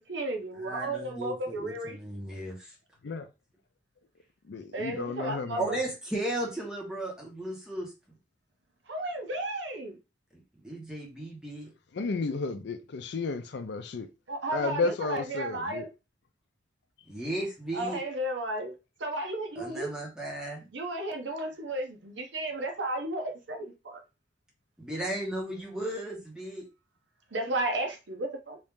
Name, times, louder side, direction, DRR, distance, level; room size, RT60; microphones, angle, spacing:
voice 1, 0.0-2.0 4.7-5.6 8.9-10.0 14.3-15.9 17.7-18.7 19.0-19.9 20.7-24.0 27.3-28.6, right 1 dB, 75° right, 0.8 m, -33 dB
voice 2, 0.5-2.6 5.5-7.9 10.6-11.7 17.1-18.0 19.6-20.7 24.8-26.7, right 1 dB, 5° right, 1.2 m, -35 dB
voice 3, 4.5-5.6 11.9-14.1 14.5-15.9, left 3 dB, 65° left, 0.5 m, -32 dB
3.1 x 2.7 x 3.5 m
head